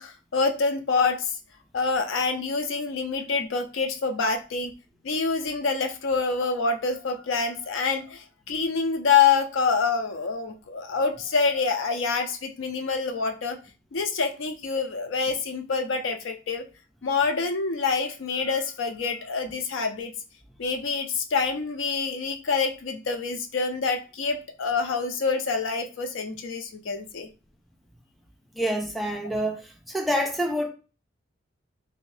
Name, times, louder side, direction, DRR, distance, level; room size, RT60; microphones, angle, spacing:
voice 1, 0.0-1.3 1.7-4.7 5.0-13.6 13.9-16.7 17.0-20.1 20.6-27.3, left 5 dB, 80° left, 0.5 m, -26 dB
voice 2, 28.6-29.6 29.9-30.7, equal, ahead, 0.4 m, -26 dB
2.7 x 2.6 x 3.2 m
head